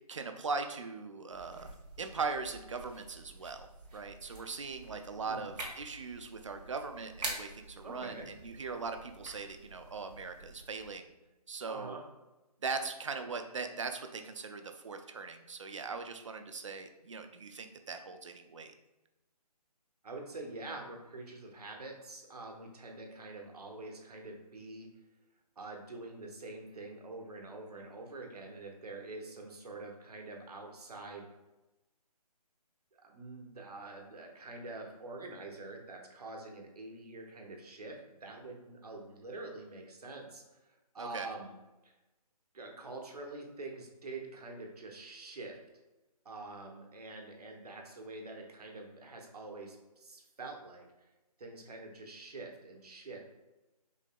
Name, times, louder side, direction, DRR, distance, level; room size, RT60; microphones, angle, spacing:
voice 1, 0.1-1.7 2.0-11.1 11.5-12.0 12.6-18.7 41.0-41.3, right 4 dB, 50° right, 7 dB, 0.4 m, -40 dB
sound 1, 1.3-10.9, right 2 dB, 90° right, 1.5 m, -47 dB
voice 2, 5.2-5.6 7.8-8.3 11.7-12.0 20.0-24.9 25.6-31.3 33.0-41.5 41.8-41.9 42.5-45.6 46.2-50.9 51.4-53.3, right 2 dB, 70° right, 1 dB, 0.9 m, -46 dB
5.2 x 2.7 x 2.2 m, 1.0 s
hypercardioid pair, 175°, 20 cm